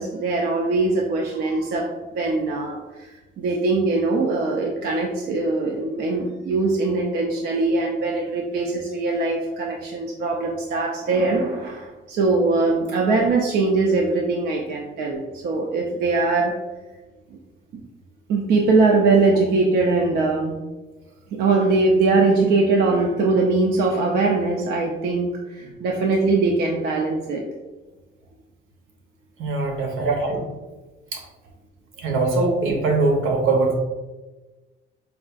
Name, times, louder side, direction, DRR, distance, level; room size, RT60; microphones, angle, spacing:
voice 1, 0.0-3.1 3.4-16.5 17.3-17.4 18.3-20.6 21.3-27.4 30.0-30.2 32.1-32.2, right 3 dB, 55° right, -1 dB, 0.4 m, -21 dB
voice 2, 29.4-30.4 31.1-31.2 32.0-33.7, right 3 dB, 75° right, 1 dB, 0.8 m, -22 dB
4.6 x 2.4 x 2.4 m, 1.2 s
cardioid pair, 175°, 20 cm